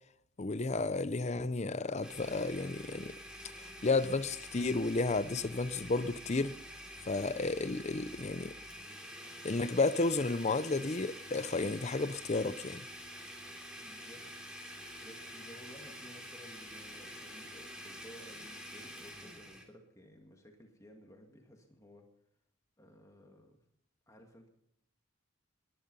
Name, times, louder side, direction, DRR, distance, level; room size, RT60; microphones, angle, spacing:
voice 1, 0.4-3.1 3.6-6.6 7.1-8.5 9.4-12.9, left 3 dB, 30° left, 0.6 m, -32 dB
Domestic sounds home sounds, 2.0-19.6, equal, 5° right, 3.2 m, -48 dB
voice 2, 13.8-14.3 15.0-22.1 22.8-23.6 24.1-24.5, equal, 15° left, 2.1 m, -56 dB
20.5 x 11.5 x 5.5 m
head